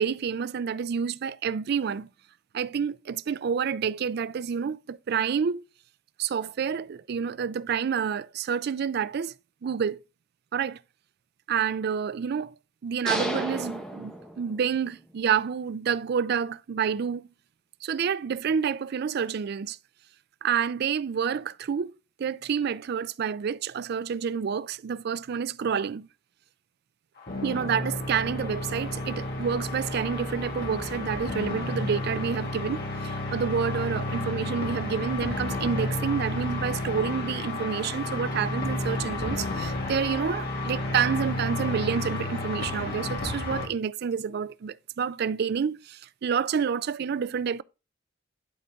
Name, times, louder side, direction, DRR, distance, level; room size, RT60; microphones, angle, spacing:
voice 1, 0.0-2.1 2.5-5.6 6.2-9.3 9.6-10.0 10.5-10.8 11.5-12.5 12.8-17.2 17.8-19.8 20.4-21.9 22.2-26.1 27.4-47.6, right 7 dB, 55° right, 0.4 m, -28 dB
sound 1, 13.1-14.9, equal, 5° left, 1.3 m, -32 dB
sound 2, 27.2-43.7, left 2 dB, 55° left, 1.9 m, -31 dB
10.5 x 4.0 x 3.7 m
head